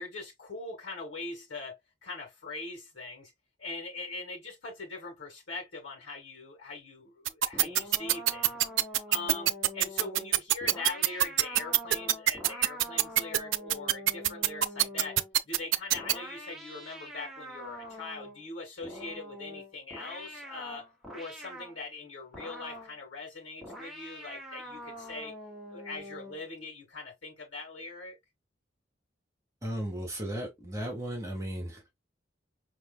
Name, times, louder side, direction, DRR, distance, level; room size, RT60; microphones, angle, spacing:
voice 1, 0.0-3.3 3.6-8.6 9.1-15.2 15.4-25.4 25.7-28.2, left 3 dB, 80° left, 1.7 m, -42 dB
sound 1, 7.3-16.1, right 13 dB, 85° right, 0.4 m, -23 dB
sound 2, 7.5-15.4 15.9-18.4 18.8-21.8 22.3-23.0 23.6-26.5, equal, ahead, 1.3 m, -45 dB
voice 2, 29.6-31.9, right 1 dB, 15° right, 1.2 m, -35 dB
5.1 x 3.1 x 2.2 m
head